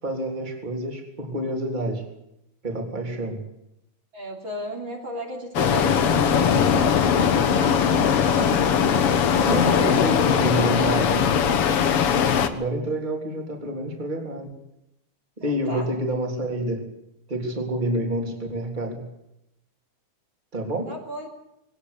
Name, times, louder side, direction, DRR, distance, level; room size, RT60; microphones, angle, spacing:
voice 1, 0.0-2.0 2.6-3.4 9.5-11.2 12.4-14.6 15.4-16.9 17.3-19.1 20.5-20.9, right 1 dB, 15° right, 2 dB, 3.5 m, -28 dB
voice 2, 4.1-8.7 9.7-9.9 10.2-11.2 15.4-15.9 20.9-21.3, equal, 40° right, -1 dB, 3.7 m, -35 dB
sound 1, 5.5-12.5, left 7 dB, 55° left, 2.0 m, -20 dB
21.5 x 18.0 x 8.4 m, 0.82 s
omnidirectional pair, 3.6 m